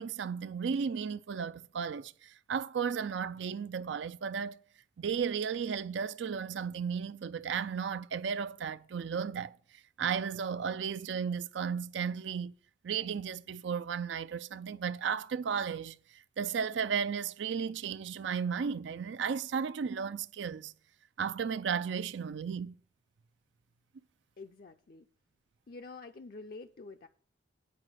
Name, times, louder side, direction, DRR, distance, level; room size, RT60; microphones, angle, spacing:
voice 1, 0.0-4.6 5.0-9.5 10.0-12.5 12.8-20.7 21.2-22.7, right 6 dB, 75° right, 0.4 m, -34 dB
voice 2, 24.4-25.1 25.7-27.1, left 3 dB, 50° left, 0.5 m, -47 dB
9.1 x 4.9 x 7.8 m
head